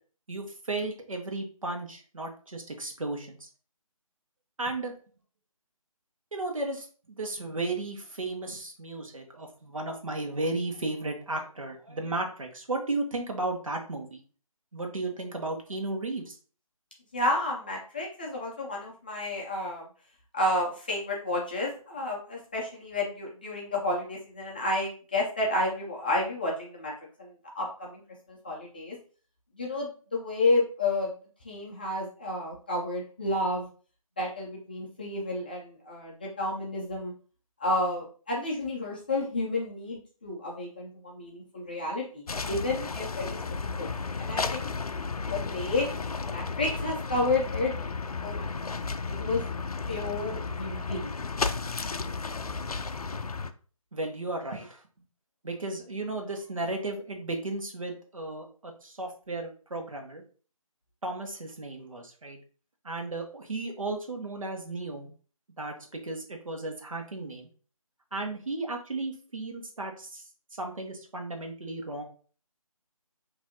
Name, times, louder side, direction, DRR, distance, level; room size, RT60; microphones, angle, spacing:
voice 1, 0.3-3.5 4.6-4.9 6.3-14.2 14.7-16.4 53.9-54.8 55.4-60.2 61.0-62.4 62.8-65.1 65.6-67.5 68.1-70.2 70.5-72.0, right 2 dB, 65° right, 3 dB, 1.2 m, -34 dB
voice 2, 17.1-19.8 20.3-26.9 27.2-28.0 28.3-29.0 29.6-31.1 31.4-33.7 34.2-37.1 37.6-43.4 43.8-43.9 44.2-44.7 45.2-45.9 46.3-47.7 48.2-48.8 49.2-49.4 49.9-51.1, left 2 dB, 15° left, -3 dB, 0.5 m, -31 dB
sound 1, 42.3-53.5, left 4 dB, 85° left, 0.5 m, -33 dB
5.9 x 2.7 x 2.8 m, 0.40 s
figure-of-eight pair, 155°, 19 cm